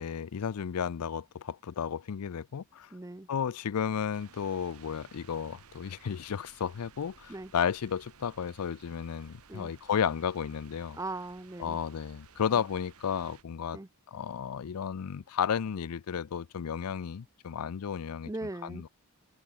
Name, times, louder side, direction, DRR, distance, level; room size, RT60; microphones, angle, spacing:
voice 1, 0.0-2.9 3.3-11.0 11.6-13.8 14.1-18.3 18.6-18.9, left 7 dB, 85° left, 0.4 m, -33 dB
voice 2, 2.9-3.3 7.3-7.5 9.5-9.7 10.9-11.8 12.5-12.6 13.7-13.9 18.2-18.8, right 2 dB, 15° right, 0.6 m, -39 dB
sound 1, 4.1-13.4, right 6 dB, 75° right, 1.6 m, -57 dB
open air
head